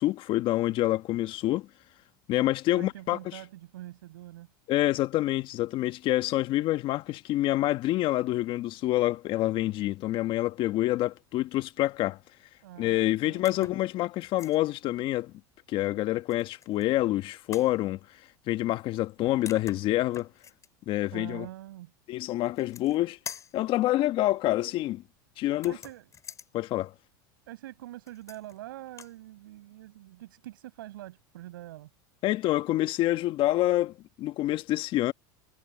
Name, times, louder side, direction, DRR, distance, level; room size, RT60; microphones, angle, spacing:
voice 1, 0.0-1.7 2.3-3.2 4.7-12.2 12.8-15.3 15.7-18.0 18.5-20.3 20.9-21.5 22.1-23.2 23.5-25.0 25.4-25.7 26.5-26.9 32.2-35.1, left 15 dB, 50° left, 1.5 m, -27 dB
voice 2, 2.8-4.5 12.6-13.8 21.1-21.9 25.6-26.1 27.5-31.9, right 15 dB, 85° right, 7.8 m, -44 dB
sound 1, 13.4-13.8 14.2-14.6 16.3-16.9 17.5-17.7 19.1-19.2 19.5-20.7 22.4-23.0 23.3-23.6 25.5-26.5 28.1-28.6 28.9-29.2, left 7 dB, 30° left, 6.9 m, -45 dB
supercardioid pair, 110°, 11 cm